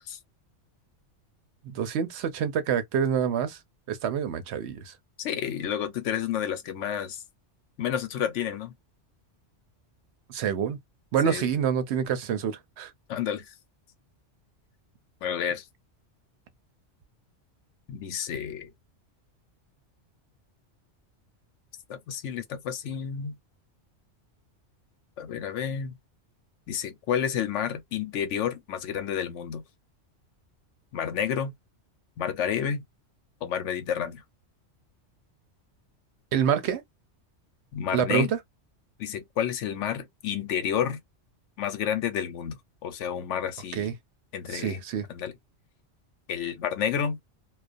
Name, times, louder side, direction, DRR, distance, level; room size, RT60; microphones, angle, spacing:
voice 1, 1.7-3.6 3.9-4.9 10.3-10.8 11.1-12.9 36.3-36.8 37.9-38.3 43.7-43.9 44.5-45.0, right 8 dB, 70° right, 0.8 m, -27 dB
voice 2, 5.2-7.2 7.8-8.7 11.2-11.5 13.1-13.5 15.2-15.6 17.9-18.7 21.9-23.4 25.2-25.9 26.7-29.6 30.9-31.5 32.2-32.8 33.4-34.2 37.7-38.3 39.0-41.0 41.6-44.0 44.3-44.8 45.1-45.3 46.3-47.2, left 8 dB, 80° left, 0.9 m, -30 dB
2.4 x 2.1 x 2.5 m
omnidirectional pair, 1.2 m